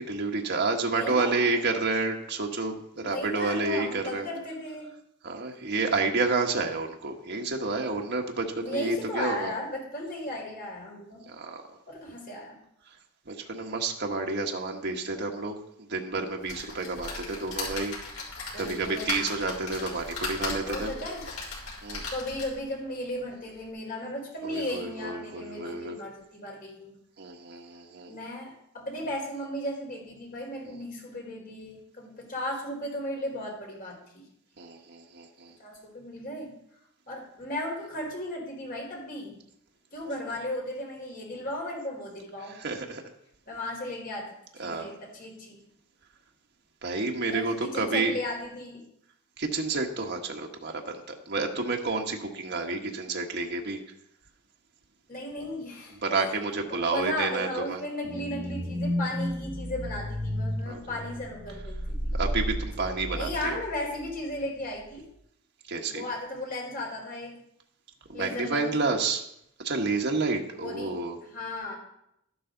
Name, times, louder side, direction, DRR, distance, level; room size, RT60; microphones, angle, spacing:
voice 1, 0.0-4.3 5.2-9.5 11.3-11.8 13.3-15.6 15.9-18.0 18.6-20.9 21.8-22.0 24.4-26.0 27.2-28.1 34.6-35.5 42.6-43.0 44.6-44.9 46.8-48.1 49.4-53.8 56.0-57.8 60.7-61.0 62.1-63.6 65.7-66.0 68.1-69.2 69.6-71.2, right 3 dB, 55° right, 1 dB, 1.4 m, -30 dB
voice 2, 0.8-1.5 2.9-4.9 8.6-11.2 11.9-12.6 18.5-19.2 20.7-21.2 22.1-26.9 28.0-34.2 35.6-36.5 37.1-39.4 39.9-42.6 43.5-44.3 44.6-45.6 47.3-48.8 55.1-56.3 56.6-62.2 63.1-65.0 65.9-67.4 68.1-68.7 70.6-71.0 71.2-71.8, left 1 dB, 45° left, -1 dB, 4.2 m, -35 dB
sound 1, 16.5-22.7 23.2-23.3 23.6-23.7, left 3 dB, 80° left, 5.7 m, -37 dB
sound 2, 58.0-63.7 64.0-64.1, equal, 5° right, 4.8 m, -32 dB
12.5 x 11.5 x 3.9 m, 0.76 s
head